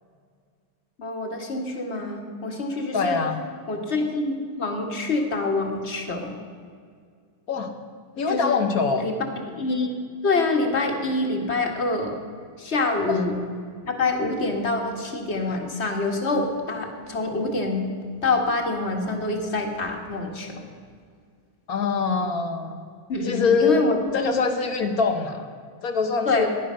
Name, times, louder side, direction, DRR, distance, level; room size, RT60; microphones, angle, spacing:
voice 1, 1.0-3.2 3.7-6.3 8.3-8.6 8.9-9.1 9.5-10.0 10.2-12.2 12.6-13.4 13.8-17.8 18.2-20.7 23.1-24.4 24.8-24.9 26.3-26.5, left 3 dB, 35° left, 3 dB, 1.8 m, -26 dB
voice 2, 2.9-3.4 7.5-7.7 8.2-9.0 13.1-13.2 15.5-15.6 21.7-22.8 23.2-23.8 24.1-25.5 25.8-26.5, left 5 dB, 50° left, 6 dB, 1.4 m, -24 dB
16.0 x 11.0 x 6.3 m, 2.1 s
omnidirectional pair, 2.2 m